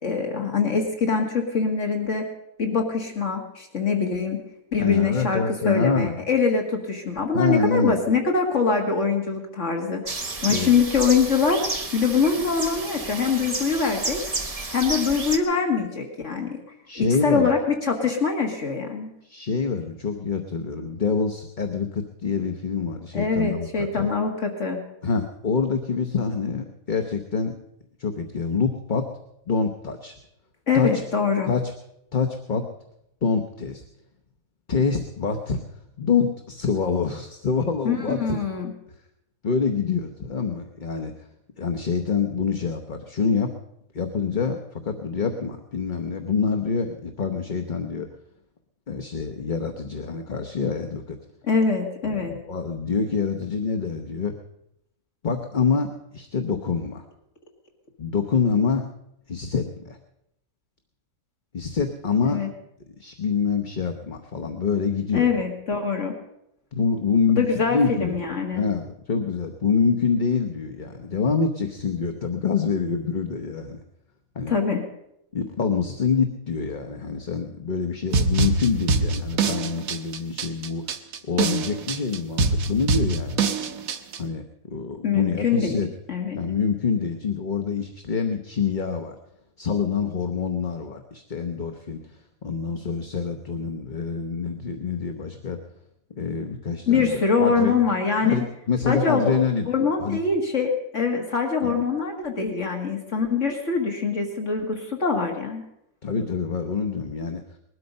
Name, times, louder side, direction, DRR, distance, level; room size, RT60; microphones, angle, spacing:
voice 1, 0.0-2.2 2.6-4.4 4.7-10.0 10.4-11.6 11.9-14.2 14.7-16.6 17.0-19.1 23.1-24.8 30.7-31.5 37.9-38.7 51.4-52.3 62.2-62.5 65.1-66.1 67.4-68.6 74.5-74.8 85.0-85.7 86.1-86.4 96.9-98.4 98.9-99.4 99.7-105.6, left 5 dB, 60° left, 2 dB, 2.1 m, -23 dB
voice 2, 4.8-6.1 7.3-8.0 10.5-10.7 16.9-17.5 19.2-24.1 25.0-27.6 28.0-29.1 29.5-30.1 30.7-31.0 31.5-31.7 32.1-32.7 33.2-33.8 34.7-35.6 36.0-38.4 39.4-41.1 41.6-43.5 43.9-48.1 48.9-51.2 52.1-54.3 55.2-57.0 58.0-58.9 59.3-60.0 61.5-62.4 63.0-65.3 66.7-68.2 68.5-73.8 74.3-74.5 75.3-80.8 81.2-83.5 84.2-85.9 86.4-89.2 89.6-95.6 96.2-97.7 98.2-99.7 100.0-100.2 101.6-101.7 106.0-107.4, left 5 dB, 40° left, 5 dB, 1.0 m, -26 dB
sound 1, 10.1-15.4, right 3 dB, 30° right, 1.1 m, -31 dB
sound 2, 78.1-84.2, right 4 dB, 80° right, 1.3 m, -24 dB
20.5 x 12.5 x 5.4 m, 0.81 s
omnidirectional pair, 1.5 m